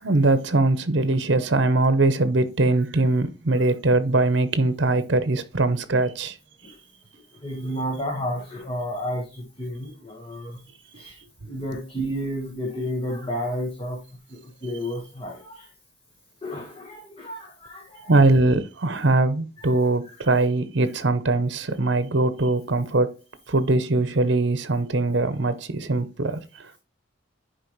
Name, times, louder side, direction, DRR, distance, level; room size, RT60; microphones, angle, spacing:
voice 1, 0.0-6.3 18.0-23.1 23.5-26.7, right 2 dB, 60° right, 0.8 m, -21 dB
voice 2, 7.4-10.6 10.9-11.1 11.5-14.0 14.3-15.7 16.4-18.1 19.6-19.7 20.2-20.3, equal, 25° left, 1.5 m, -31 dB
10.0 x 4.7 x 3.1 m
head